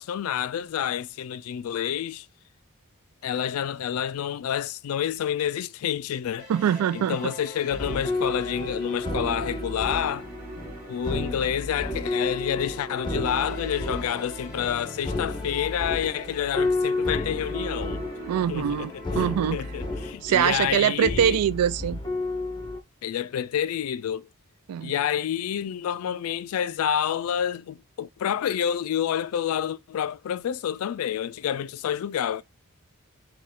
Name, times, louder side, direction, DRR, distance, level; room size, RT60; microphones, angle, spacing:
voice 1, 0.0-2.3 3.2-6.5 6.9-10.3 10.9-18.0 18.5-21.4 23.0-24.3 24.8-32.4, left 9 dB, 70° left, 0.3 m, -28 dB
sound 1, 6.4-20.1, right 1 dB, 40° right, 1.5 m, -45 dB
voice 2, 6.5-7.2 18.3-19.6 20.2-22.0 24.7-24.9, right 9 dB, 85° right, 0.3 m, -23 dB
sound 2, 7.7-22.8, left 2 dB, 20° left, 0.6 m, -31 dB
4.2 x 2.3 x 3.6 m
head